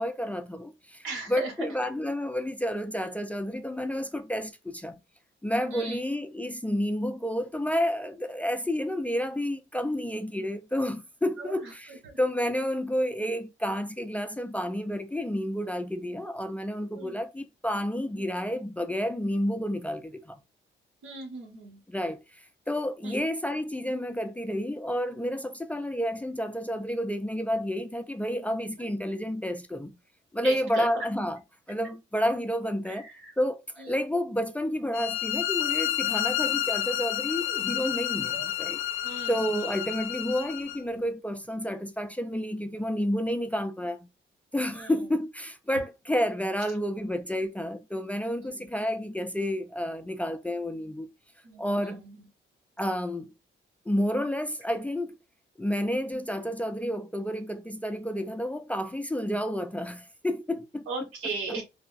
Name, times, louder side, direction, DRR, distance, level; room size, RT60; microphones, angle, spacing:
voice 1, 0.0-5.0 5.4-11.9 12.2-20.4 21.9-22.2 22.7-29.9 30.3-31.4 31.7-33.1 33.4-38.8 39.3-44.1 44.5-51.1 51.6-52.0 52.8-53.3 53.9-55.1 55.6-60.8, equal, 5° left, 0.4 m, -30 dB
voice 2, 1.0-1.7 5.7-6.0 8.9-9.1 11.4-12.2 16.1-16.2 16.9-17.2 18.1-18.3 21.0-21.8 23.0-23.2 25.4-25.5 28.8-28.9 30.4-31.1 32.8-33.3 33.8-34.0 38.3-38.5 39.0-39.7 44.7-45.1 48.4-48.7 51.4-52.3 60.9-61.6, right 3 dB, 90° right, 1.2 m, -38 dB
sound 1, 34.9-40.8, left 12 dB, 80° left, 0.4 m, -30 dB
3.3 x 2.0 x 2.4 m
cardioid pair, 90°, 20 cm